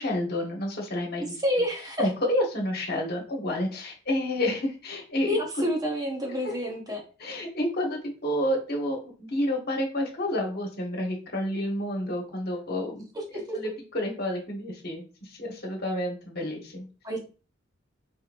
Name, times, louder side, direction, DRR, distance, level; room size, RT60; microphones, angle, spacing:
voice 1, 0.0-1.3 2.0-5.4 6.4-6.5 7.2-13.0 13.5-16.9, left 1 dB, 50° left, 1 dB, 1.3 m, -29 dB
voice 2, 1.4-2.1 5.3-7.0 13.1-13.7 17.0-17.2, equal, 20° right, 1 dB, 0.8 m, -29 dB
4.3 x 3.8 x 2.5 m, 0.35 s
head